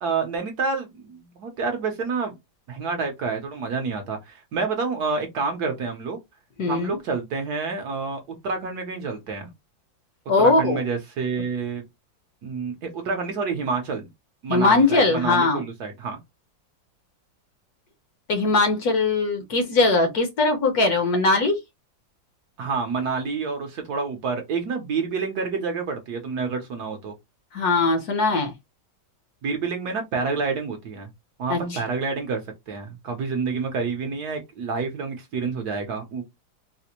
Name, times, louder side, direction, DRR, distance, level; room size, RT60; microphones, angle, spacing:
voice 1, 0.0-2.4 2.7-6.2 6.7-9.5 10.4-11.8 12.4-14.1 14.4-16.2 22.6-27.1 29.4-31.1 31.4-32.4 32.7-36.2, right 4 dB, 65° right, 1.1 m, -28 dB
voice 2, 6.6-7.0 10.3-10.8 14.5-15.6 18.3-21.6 27.5-28.5 31.5-31.6, left 3 dB, 65° left, 1.1 m, -20 dB
4.1 x 2.0 x 2.8 m
omnidirectional pair, 2.1 m